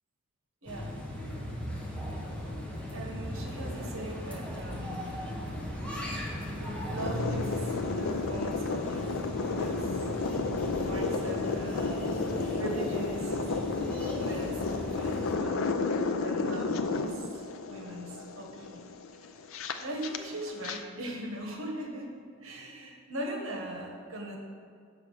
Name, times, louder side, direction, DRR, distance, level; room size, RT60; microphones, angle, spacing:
sound 1, 0.7-15.4, left 1 dB, 5° left, 1.1 m, -37 dB
voice 1, 2.9-5.2 6.5-9.2 9.6-10.0 10.8-12.2 12.6-13.3 14.2-15.7 16.2-18.8 19.8-22.1 22.4-24.4, right 1 dB, 70° right, 1 dB, 1.2 m, -40 dB
sound 2, 7.0-20.8, left 3 dB, 70° left, 0.5 m, -32 dB
6.8 x 5.0 x 6.4 m, 2.4 s
head